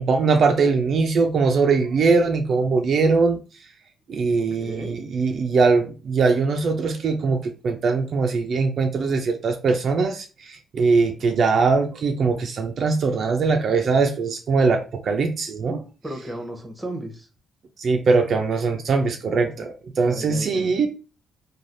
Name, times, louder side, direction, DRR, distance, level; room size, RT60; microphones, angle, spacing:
voice 1, 0.0-3.4 4.1-15.8 17.8-20.9, right 4 dB, 55° right, 0.4 m, -21 dB
voice 2, 4.4-5.0 16.0-17.3 20.0-20.8, right 1 dB, 10° right, 0.8 m, -35 dB
3.2 x 2.3 x 2.6 m
cardioid pair, 90°, 0 cm